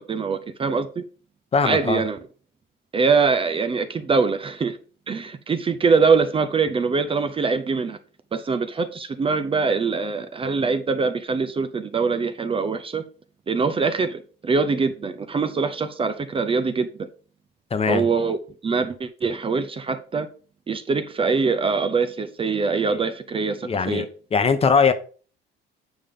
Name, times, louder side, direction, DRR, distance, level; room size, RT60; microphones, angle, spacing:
voice 1, 0.1-1.0 1.6-2.2 2.9-4.8 5.1-8.0 8.3-13.0 13.5-16.9 17.9-20.3 20.7-24.1, right 4 dB, 25° right, 0.7 m, -23 dB
voice 2, 1.5-2.0 17.7-18.0 22.9-23.0 23.6-24.0 24.3-24.9, left 5 dB, 30° left, 0.9 m, -20 dB
8.7 x 5.2 x 3.7 m
cardioid pair, 130°, 21 cm